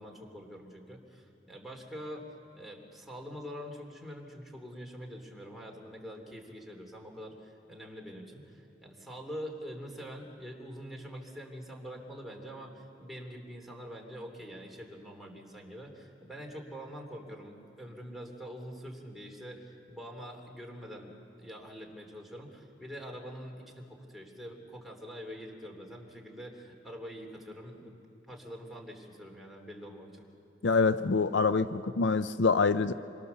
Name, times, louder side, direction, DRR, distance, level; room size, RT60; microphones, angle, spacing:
voice 1, 0.0-2.3 2.5-21.1 21.4-28.0 28.3-30.2, equal, ahead, -1 dB, 3.2 m, -45 dB
voice 2, 30.6-32.9, left 4 dB, 70° left, 12 dB, 0.6 m, -25 dB
27.0 x 23.5 x 7.0 m, 2.6 s
head